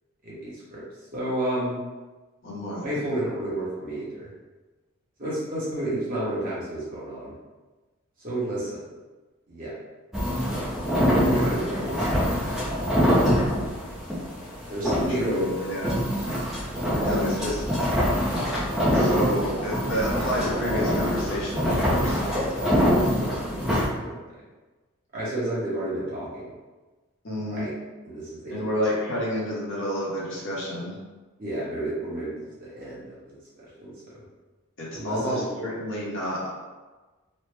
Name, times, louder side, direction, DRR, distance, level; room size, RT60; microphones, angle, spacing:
voice 1, 0.2-0.8 1.1-1.8 2.8-4.3 5.2-7.3 8.2-8.8 9.5-9.7 11.0-12.2 14.7-15.4 15.7-15.9 22.2-22.4 23.1-24.2 25.1-26.5 27.5-27.7 28.0-28.7 31.4-32.3 32.6-34.2 34.9-35.6, right 1 dB, 40° right, -8 dB, 0.9 m, -31 dB
voice 2, 2.4-3.0 11.3-12.0 15.2-16.0 17.0-17.6 18.9-22.2 27.2-27.6 28.5-30.9 34.8-36.5, equal, 55° left, -5 dB, 0.8 m, -30 dB
sound 1, 10.1-23.9, equal, ahead, 0.4 m, -25 dB
3.2 x 2.0 x 3.2 m, 1.2 s
head